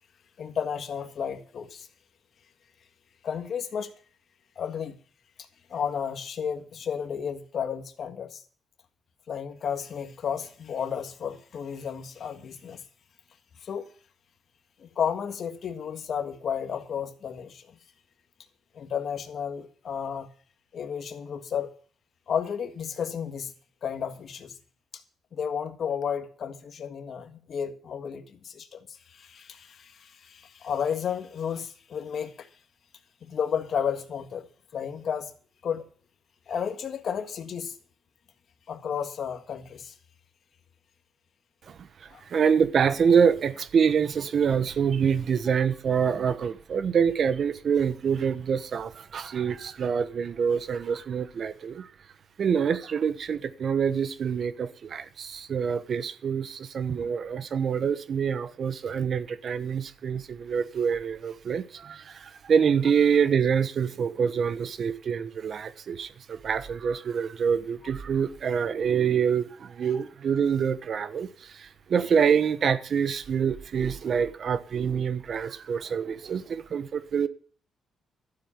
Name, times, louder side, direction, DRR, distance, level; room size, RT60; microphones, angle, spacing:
voice 1, 0.4-1.9 3.2-3.9 4.5-4.9 5.7-8.4 9.3-12.8 13.6-13.9 14.8-17.7 18.7-20.3 20.7-21.7 22.3-23.5 23.8-24.6 24.9-25.0 25.3-32.5 33.2-34.4 34.7-35.3 35.6-35.8 36.5-37.7 38.7-39.9 42.1-42.2, left 7 dB, 55° left, 1.7 m, -32 dB
voice 2, 41.7-51.9 52.4-77.3, right 7 dB, 55° right, 1.1 m, -26 dB
13.0 x 7.6 x 8.2 m
cardioid pair, 90°, 0 cm